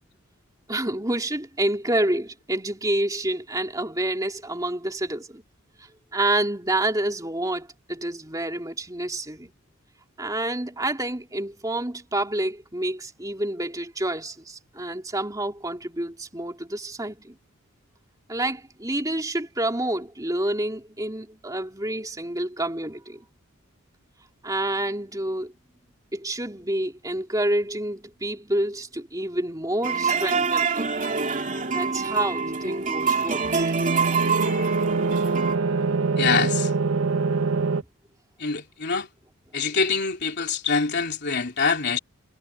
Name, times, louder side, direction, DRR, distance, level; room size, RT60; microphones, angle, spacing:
voice 1, 0.7-5.4 5.8-9.5 10.2-17.4 18.3-23.2 24.4-25.5 26.1-30.9 31.7-33.5, right 1 dB, 15° right, 3.0 m, -28 dB
sound 1, 29.8-35.6, right 5 dB, 35° right, 2.7 m, -25 dB
sound 2, 33.4-37.8, right 4 dB, 65° right, 0.8 m, -24 dB
voice 2, 36.2-36.7 38.4-39.1 39.5-42.0, left 5 dB, 50° left, 3.8 m, -24 dB
head